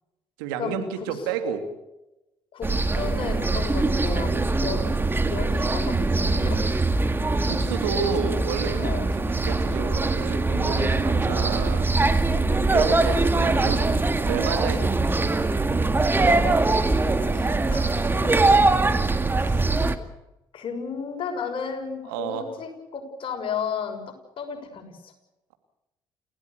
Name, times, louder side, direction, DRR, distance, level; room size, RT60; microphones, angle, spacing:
voice 1, 0.4-1.7 7.5-11.9 12.7-13.9 14.3-15.3 22.1-22.5, right 6 dB, 80° right, 6 dB, 2.7 m, -30 dB
voice 2, 2.5-5.0 5.2-6.8 8.8-9.1 11.0-11.3 12.3-12.7 16.4-17.9 18.2-18.3 19.4-19.7 20.5-25.1, left 6 dB, 55° left, 3 dB, 6.7 m, -34 dB
sound 1, 2.6-20.0, right 3 dB, 20° right, 2.2 m, -22 dB
29.5 x 16.5 x 6.9 m, 0.95 s
hypercardioid pair, 55°, 11 cm